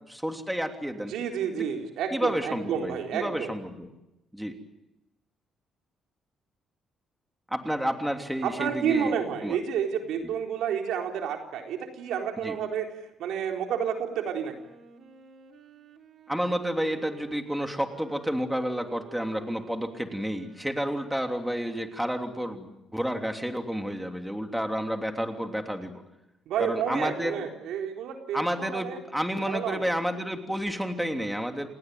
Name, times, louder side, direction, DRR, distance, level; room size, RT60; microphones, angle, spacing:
voice 1, 0.0-1.1 2.1-3.9 4.3-4.6 7.5-9.1 9.4-9.6 12.4-12.5 16.3-26.0 26.6-27.5 28.3-31.7, equal, 5° right, 5 dB, 3.1 m, -30 dB
voice 2, 1.1-3.5 8.4-12.9 13.2-14.5 26.5-29.0 29.4-29.9, right 8 dB, 85° right, 3 dB, 4.0 m, -30 dB
Wind instrument woodwind instrument, 14.4-23.0, right 6 dB, 60° right, 3.1 m, -51 dB
28.5 x 19.0 x 9.5 m, 0.94 s
cardioid pair, 90°, 0 cm